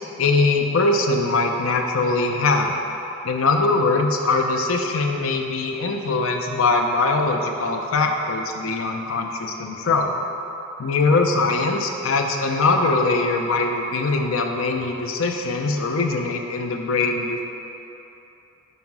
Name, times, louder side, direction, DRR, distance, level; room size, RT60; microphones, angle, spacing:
voice 1, 0.2-2.7 3.2-10.1 10.8-17.4, left 3 dB, 85° left, 3 dB, 0.6 m, -22 dB
5.7 x 5.3 x 4.6 m, 2.9 s
head